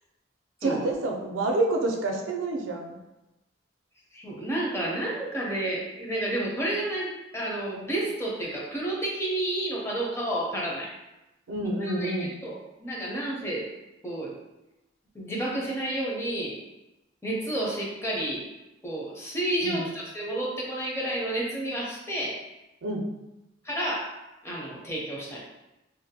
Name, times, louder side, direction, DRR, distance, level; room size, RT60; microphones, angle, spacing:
voice 1, 0.6-3.0 11.5-12.3 19.6-19.9 22.8-23.0, right 2 dB, 90° right, 1 dB, 0.4 m, -28 dB
voice 2, 4.1-10.9 11.8-13.7 14.0-14.4 15.1-16.6 17.2-18.4 18.8-22.4 23.6-24.2 24.4-25.4, right 1 dB, 15° left, -4 dB, 0.5 m, -30 dB
2.5 x 2.1 x 2.7 m, 0.97 s
head